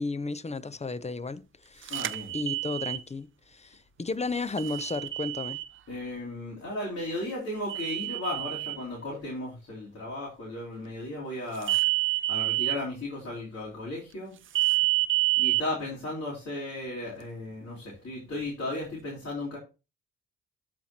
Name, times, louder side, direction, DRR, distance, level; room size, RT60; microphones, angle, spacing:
voice 1, 0.0-2.0 2.3-5.6, left 3 dB, 20° left, 0.7 m, -34 dB
voice 2, 1.9-2.3 5.9-11.7 12.3-14.3 15.4-19.6, left 1 dB, 55° left, 3.4 m, -35 dB
sound 1, 1.9-3.0 4.6-5.7 7.7-8.8 11.6-12.8 14.5-15.6, right 19 dB, 45° right, 0.5 m, -27 dB
12.5 x 4.4 x 2.8 m
hypercardioid pair, 45°, 30 cm